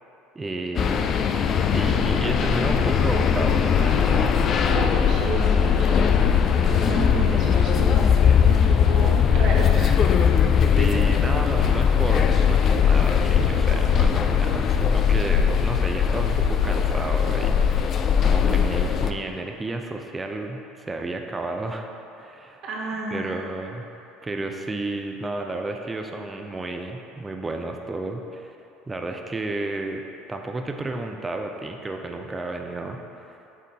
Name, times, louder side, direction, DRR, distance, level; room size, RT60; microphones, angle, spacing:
voice 1, 0.3-1.1 1.7-4.3 10.8-21.9 22.1-22.6 23.1-23.9 24.2-28.6 28.9-30.0 30.3-33.4, right 2 dB, 20° right, 3 dB, 0.5 m, -32 dB
sound 1, 0.8-19.1, left 7 dB, 45° left, 0.4 m, -20 dB
voice 2, 4.7-6.1 6.5-10.1 22.6-23.3, right 2 dB, 55° right, -3 dB, 1.4 m, -31 dB
6.5 x 3.7 x 4.1 m, 2.9 s
hypercardioid pair, 80°, 0 cm